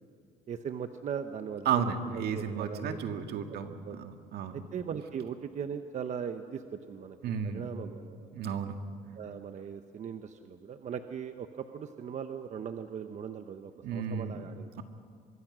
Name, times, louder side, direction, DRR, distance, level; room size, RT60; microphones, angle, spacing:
voice 1, 0.5-1.7 2.1-3.0 3.5-3.6 3.8-4.0 4.5-7.2 7.4-8.3 9.1-14.7, right 7 dB, 45° right, 8 dB, 1.0 m, -39 dB
voice 2, 1.7-4.6 7.2-7.6 8.3-8.8 13.8-14.4, right 7 dB, 70° right, 6 dB, 1.9 m, -33 dB
24.0 x 23.5 x 6.2 m, 2.3 s
cardioid pair, 110°, 17 cm